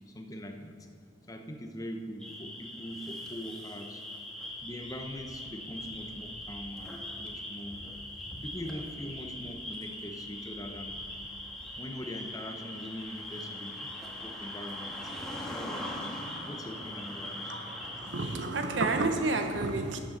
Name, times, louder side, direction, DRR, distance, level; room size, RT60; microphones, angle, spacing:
voice 1, 0.1-0.8 1.3-4.0 4.6-7.8 8.4-11.0 11.7-13.9 14.2-15.1 15.5-16.2 16.4-17.5, equal, 20° left, 4 dB, 0.9 m, -42 dB
sound 1, 2.2-18.4, left 1 dB, 5° left, 1.5 m, -41 dB
voice 2, 18.0-20.0, right 3 dB, 85° right, 6 dB, 1.0 m, -30 dB
13.0 x 7.7 x 5.4 m, 2.1 s
head